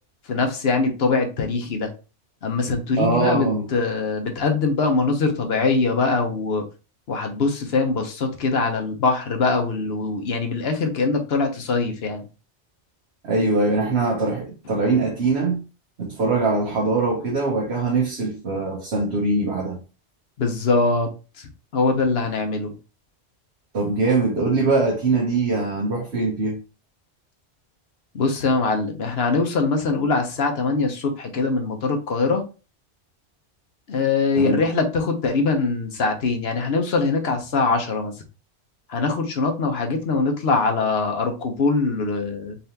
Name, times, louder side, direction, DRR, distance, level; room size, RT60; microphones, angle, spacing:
voice 1, 0.3-1.9 2.4-6.6 7.1-12.2 20.4-21.1 21.4-22.7 28.1-32.4 33.9-38.1 38.9-42.6, left 3 dB, 65° left, 1.1 m, -22 dB
voice 2, 3.0-3.7 13.2-15.6 16.0-19.8 23.7-26.6 34.4-34.6, right 3 dB, 70° right, 1.2 m, -22 dB
4.1 x 3.3 x 2.7 m
omnidirectional pair, 1.2 m